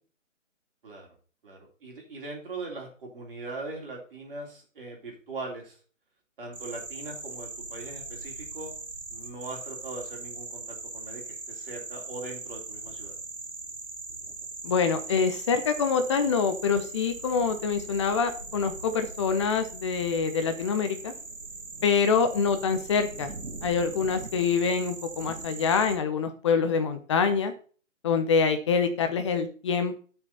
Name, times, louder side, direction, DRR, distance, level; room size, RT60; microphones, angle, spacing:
voice 1, 1.4-5.8 6.4-8.7 9.1-13.1, right 3 dB, 45° right, 0 dB, 3.5 m, -40 dB
sound 1, 6.5-26.0, right 3 dB, 75° right, 1.9 m, -40 dB
voice 2, 14.6-21.1 21.8-23.3 23.6-27.5 28.0-30.0, left 5 dB, 25° left, 8 dB, 0.9 m, -25 dB
10.0 x 6.5 x 4.2 m, 0.40 s
figure-of-eight pair, 140°, 38 cm